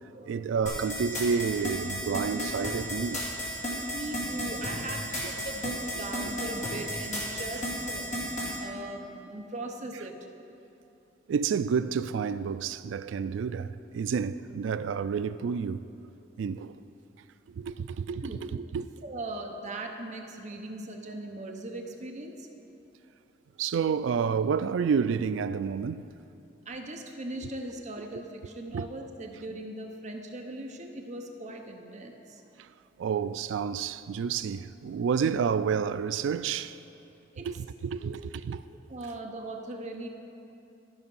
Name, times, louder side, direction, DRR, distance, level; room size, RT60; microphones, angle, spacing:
voice 1, 0.3-3.2 8.5-8.6 11.3-15.8 16.4-16.8 17.5-18.2 18.5-18.8 23.6-26.1 28.7-28.9 32.6-32.7 33.0-36.8 37.4-38.6, right 6 dB, 70° right, 0.3 m, -29 dB
sound 1, 0.7-8.5, equal, 40° left, 2.5 m, -33 dB
voice 2, 3.9-8.2 8.6-10.1 18.2-18.6 19.0-22.5 26.7-32.4 37.3-37.6 38.0-38.1 38.9-40.1, right 2 dB, 40° right, 0.8 m, -39 dB
13.0 x 5.9 x 5.4 m
head